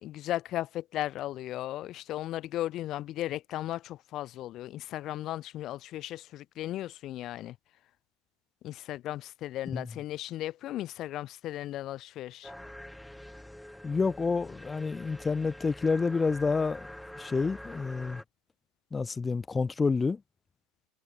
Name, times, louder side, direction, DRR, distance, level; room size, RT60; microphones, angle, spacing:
voice 1, 0.0-7.5 8.6-12.5, left 14 dB, 45° left, 1.5 m, -36 dB
voice 2, 9.6-10.0 13.8-16.9 17.2-18.2 18.9-20.2, left 4 dB, 20° left, 0.6 m, -29 dB
sound 1, 12.4-18.2, left 1 dB, 5° left, 2.0 m, -46 dB
hypercardioid pair, 80°, 0 cm